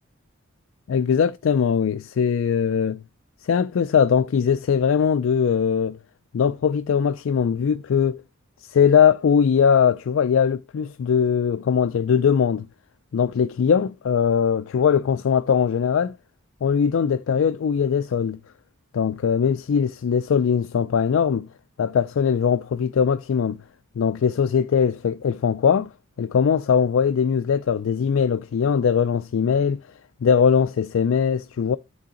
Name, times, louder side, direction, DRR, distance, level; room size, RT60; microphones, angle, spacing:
voice 1, 0.9-3.0 3.5-6.0 6.3-8.2 8.7-12.7 13.1-16.1 16.6-18.4 18.9-21.5 21.8-23.6 24.0-25.9 26.2-29.8 30.2-31.8, left 7 dB, 70° left, 0.4 m, -20 dB
10.0 x 3.9 x 3.8 m
head